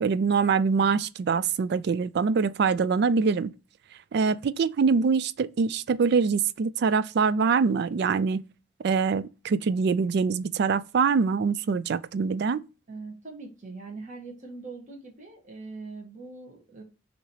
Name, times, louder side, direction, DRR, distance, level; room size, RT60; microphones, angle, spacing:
voice 1, 0.0-3.5 4.1-8.4 8.8-12.6, right 5 dB, 55° right, 0.3 m, -24 dB
voice 2, 12.9-16.8, right 3 dB, 40° right, 1.4 m, -42 dB
6.2 x 2.9 x 2.8 m
head